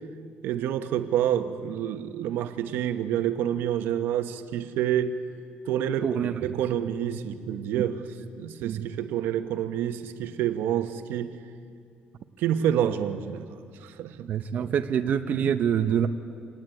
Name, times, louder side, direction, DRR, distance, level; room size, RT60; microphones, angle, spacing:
voice 1, 0.4-5.2 5.7-8.0 8.4-11.4 12.4-14.3, right 10 dB, 85° right, 8 dB, 1.3 m, -28 dB
voice 2, 6.0-6.3 6.8-6.9 8.6-8.9 14.3-16.1, right 8 dB, 50° right, 7 dB, 1.0 m, -26 dB
25.5 x 19.5 x 9.2 m, 2.3 s
cardioid pair, 150°, 3 cm